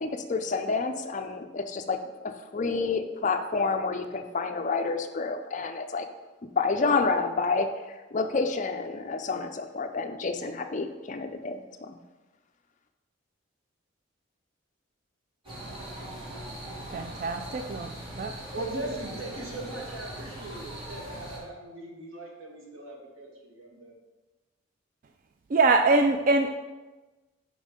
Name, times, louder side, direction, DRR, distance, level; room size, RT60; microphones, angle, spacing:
voice 1, 0.0-2.0 2.2-6.1 6.6-12.0, left 4 dB, 35° left, 7 dB, 0.5 m, -29 dB
sound 1, 15.4-21.4, right 1 dB, 25° right, 2.0 m, -40 dB
voice 2, 16.9-18.3 25.5-26.5, right 3 dB, 40° right, 5 dB, 0.3 m, -24 dB
voice 3, 18.5-23.9, right 2 dB, 90° right, -1 dB, 1.7 m, -39 dB
5.4 x 5.4 x 5.1 m, 1.2 s
head